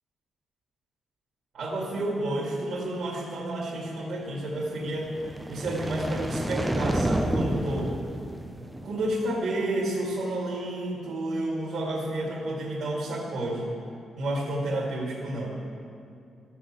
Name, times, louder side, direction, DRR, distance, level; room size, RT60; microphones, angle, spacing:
voice 1, 1.5-5.1 5.5-7.9 8.8-13.7 14.2-15.6, right 1 dB, 55° right, -5 dB, 2.1 m, -30 dB
sound 1, 5.0-9.3, right 1 dB, 10° right, 0.6 m, -30 dB
12.5 x 6.4 x 7.5 m, 2.5 s
cardioid pair, 110°, 0 cm